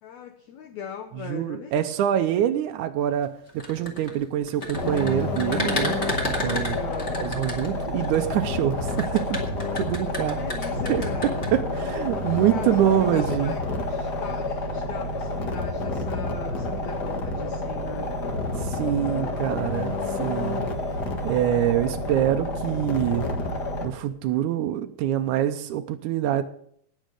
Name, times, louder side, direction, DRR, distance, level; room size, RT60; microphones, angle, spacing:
voice 1, 0.0-1.9 6.6-7.2 10.3-11.5 12.5-18.1, left 7 dB, 75° left, 6 dB, 1.7 m, -40 dB
voice 2, 1.2-6.0 6.4-6.8 7.2-9.4 9.7-10.4 10.9-13.6 18.6-20.6 21.2-23.3 23.8-26.4, right 11 dB, 90° right, 7 dB, 1.8 m, -25 dB
sound 1, 3.5-8.2 8.9-11.5, left 1 dB, 25° left, 1.7 m, -31 dB
sound 2, 4.7-23.9, left 2 dB, 45° left, 1.4 m, -29 dB
18.0 x 6.3 x 6.5 m, 0.66 s
omnidirectional pair, 4.3 m